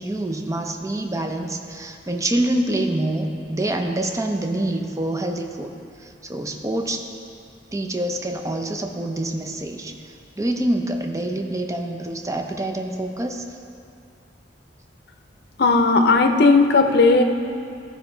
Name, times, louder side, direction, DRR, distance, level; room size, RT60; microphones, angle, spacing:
voice 1, 0.0-5.7 6.0-7.1 7.7-13.4, right 1 dB, 20° right, 3 dB, 0.5 m, -26 dB
voice 2, 15.6-17.2, left 3 dB, 60° left, 5 dB, 0.6 m, -15 dB
14.0 x 5.0 x 3.9 m, 2.4 s
head